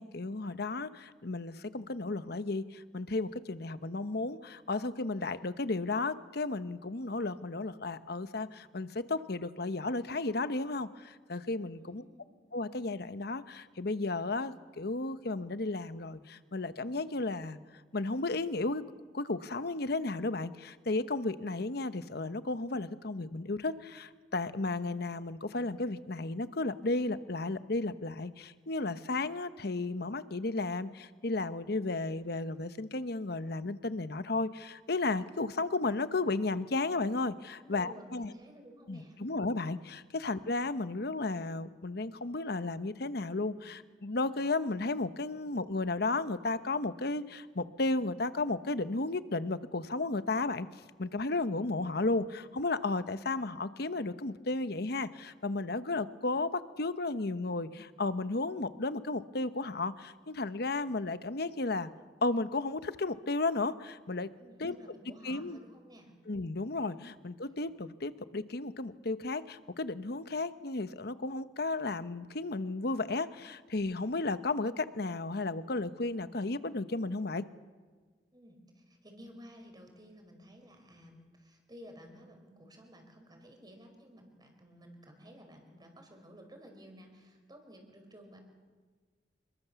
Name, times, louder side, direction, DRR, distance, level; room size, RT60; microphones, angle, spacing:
voice 1, 0.0-12.0 12.5-17.6 17.9-18.8 19.1-38.3 38.9-50.7 51.0-61.9 62.2-64.3 64.6-64.7 65.2-65.6 66.3-77.5, left 3 dB, 65° left, 12 dB, 1.0 m, -34 dB
voice 2, 11.8-12.3 37.6-39.2 64.4-66.1 78.3-88.4, equal, 25° right, 4 dB, 5.0 m, -54 dB
28.0 x 22.0 x 7.0 m, 1.5 s
head